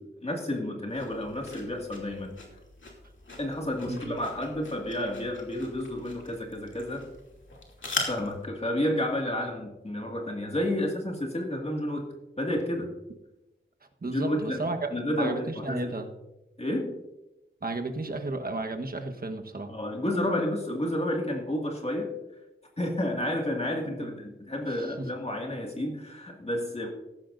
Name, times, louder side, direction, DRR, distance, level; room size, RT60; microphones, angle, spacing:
voice 1, 0.0-2.3 3.4-7.1 8.1-12.1 12.4-12.9 14.0-16.0 16.6-17.0 19.7-22.1 22.8-26.9, left 1 dB, 30° left, 1 dB, 2.0 m, -31 dB
sound 1, 0.9-8.4, left 3 dB, 70° left, 2.6 m, -40 dB
voice 2, 14.0-14.9 15.2-16.1 17.6-19.7 23.9-24.1 24.8-25.1, right 2 dB, 45° right, 5 dB, 1.3 m, -33 dB
15.5 x 11.5 x 2.6 m, 0.97 s
wide cardioid pair, 75°, 20 cm